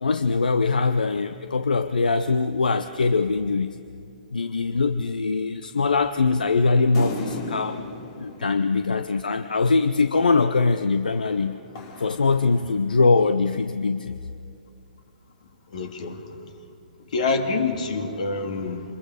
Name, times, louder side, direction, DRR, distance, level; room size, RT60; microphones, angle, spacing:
voice 1, 0.0-3.7 4.3-7.8 8.2-11.6 12.0-14.2, left 4 dB, 80° left, 10 dB, 0.7 m, -22 dB
sound 1, 6.9-9.6 11.1-13.1, left 3 dB, 40° left, 2.5 m, -37 dB
voice 2, 15.7-16.2 17.1-18.8, left 3 dB, 60° left, 5 dB, 2.3 m, -26 dB
26.0 x 21.5 x 5.0 m, 2.3 s
figure-of-eight pair, 130°, 5 cm